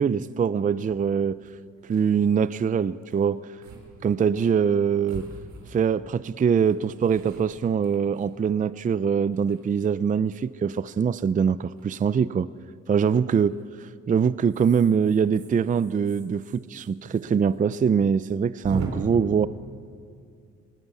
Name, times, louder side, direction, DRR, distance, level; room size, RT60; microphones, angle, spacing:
voice 1, 0.0-1.4 1.9-3.5 4.0-5.2 5.7-12.5 12.9-19.5, right 7 dB, 25° right, 17 dB, 0.5 m, -23 dB
sound 1, 0.9-1.0 1.5-1.6 1.8-2.1 3.0-3.2 3.6-3.8 4.2-4.3 5.1-6.0 6.6-8.8 9.3-10.1 11.8-12.0 13.3-13.7 14.4-17.2 17.5-17.6 17.9-18.0 18.6-18.9, right 4 dB, 65° right, 4.0 m, -41 dB
21.5 x 17.0 x 8.3 m, 2.3 s
cardioid pair, 90°, 30 cm